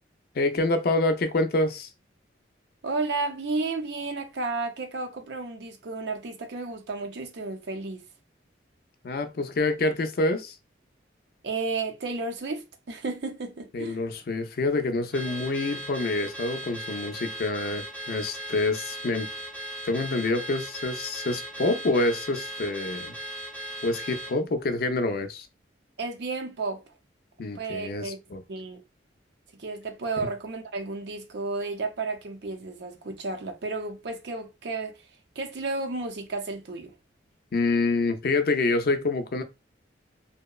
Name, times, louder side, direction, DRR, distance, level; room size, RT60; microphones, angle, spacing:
voice 1, 0.4-1.9 9.0-10.5 13.7-19.3 19.9-23.1 23.8-25.5 27.4-28.4 37.5-39.4, left 2 dB, 50° left, 0.4 m, -27 dB
voice 2, 2.8-8.0 11.4-14.0 26.0-26.8 27.5-28.2 28.5-28.8 29.5-35.0 35.4-36.9, right 3 dB, 65° right, 0.5 m, -32 dB
Car / Alarm, 15.1-24.4, right 1 dB, 10° left, 0.7 m, -38 dB
2.8 x 2.0 x 2.2 m
head